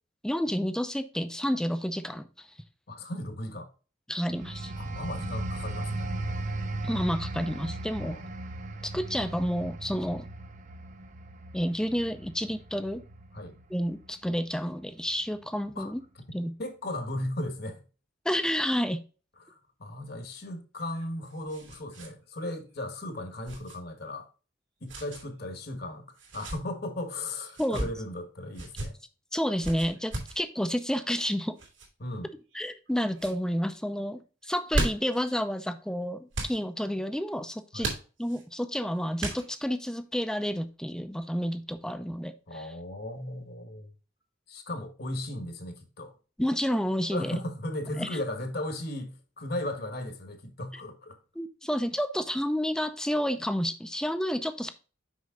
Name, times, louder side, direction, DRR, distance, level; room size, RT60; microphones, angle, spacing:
voice 1, 0.2-2.5 4.1-4.7 6.8-8.2 8.8-10.3 11.5-13.0 13.7-16.0 16.3-16.5 18.2-19.0 27.6-27.9 29.3-31.5 32.5-37.9 38.2-42.7 46.4-47.3 48.0-48.2 51.4-54.7, equal, 5° left, 0.5 m, -30 dB
voice 2, 2.9-3.7 4.8-6.1 8.0-8.3 13.3-13.5 15.7-15.9 16.6-17.8 19.4-24.3 24.8-26.1 26.3-29.0 32.0-32.3 37.7-37.9 42.5-43.9 44.5-46.1 47.1-51.2, left 1 dB, 55° left, 1.4 m, -36 dB
sound 1, 4.3-14.7 15.1-15.4, right 2 dB, 40° right, 0.7 m, -37 dB
sound 2, 20.8-22.1 22.4-22.5 23.4-23.8 24.9-25.2 26.2-26.6 27.5-27.9 28.5-28.9 29.6-30.4 31.6-31.9 32.5-32.9 33.1-33.4 34.4-35.2 36.3-36.6 37.8-38.4 39.2-39.7, right 1 dB, 75° right, 2.7 m, -34 dB
6.3 x 5.5 x 3.7 m
head